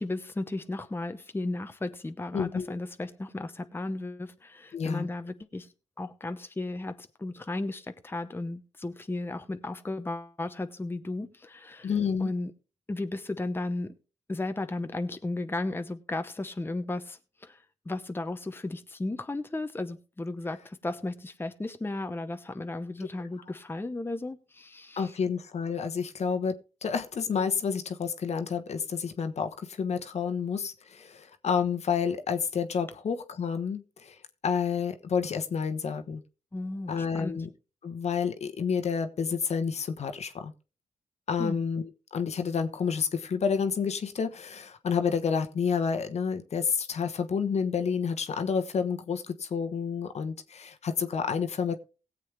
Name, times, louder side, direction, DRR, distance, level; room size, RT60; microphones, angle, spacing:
voice 1, 0.0-11.9 12.2-12.5 12.9-14.0 14.3-25.1 36.5-37.4 41.4-41.6, left 2 dB, 15° left, 0.9 m, -35 dB
voice 2, 2.3-2.7 4.7-5.1 11.8-12.3 25.0-26.6 26.8-36.2 36.9-37.5 37.8-40.5 41.3-51.8, left 6 dB, 60° left, 1.2 m, -29 dB
17.5 x 7.6 x 3.4 m
cardioid pair, 60°, 13 cm